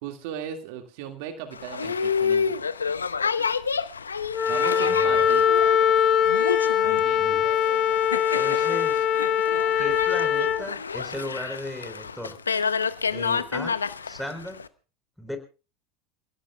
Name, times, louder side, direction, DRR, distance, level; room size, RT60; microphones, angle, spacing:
voice 1, 0.0-2.6 4.5-5.5 6.8-7.2, right 9 dB, 65° right, 6 dB, 2.0 m, -37 dB
Boat Water vehicle, 1.5-14.7, left 6 dB, 90° left, 0.7 m, -29 dB
Wind instrument woodwind instrument, 4.3-10.6, left 8 dB, 40° left, 1.4 m, -22 dB
voice 2, 4.8-5.2 6.8-7.5 8.3-9.1 9.8-12.4 13.1-13.8 14.0-14.6 15.2-15.4, left 1 dB, ahead, 6 dB, 4.1 m, -37 dB
29.5 x 16.5 x 2.3 m, 0.34 s
hypercardioid pair, 80°, 0 cm